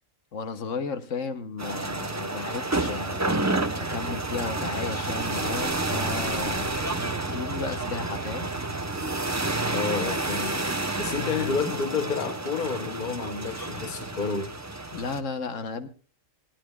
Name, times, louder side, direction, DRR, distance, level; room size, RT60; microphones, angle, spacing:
voice 1, 0.3-3.4 3.8-8.5 14.9-15.9, left 5 dB, 70° left, 1.3 m, -34 dB
sound 1, 1.6-15.2, right 2 dB, 15° right, 0.6 m, -30 dB
sound 2, 2.7-9.6, right 3 dB, 40° right, 1.0 m, -39 dB
voice 2, 9.7-10.6 11.0-14.5, left 5 dB, 40° left, 1.0 m, -30 dB
19.5 x 16.0 x 2.3 m
omnidirectional pair, 1.4 m